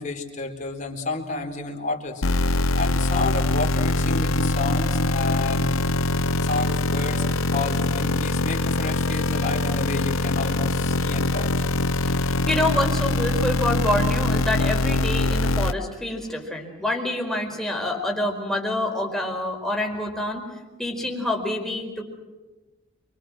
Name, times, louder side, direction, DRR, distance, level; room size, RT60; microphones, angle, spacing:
voice 1, 0.0-2.2 2.7-5.7 6.4-7.2 7.5-11.6, left 3 dB, 35° left, 1 dB, 4.3 m, -30 dB
sound 1, 2.2-15.7, left 2 dB, 75° left, 1.0 m, -23 dB
voice 2, 12.0-20.5 20.8-22.0, left 1 dB, ahead, 0 dB, 4.9 m, -27 dB
29.0 x 24.5 x 6.4 m, 1.2 s
head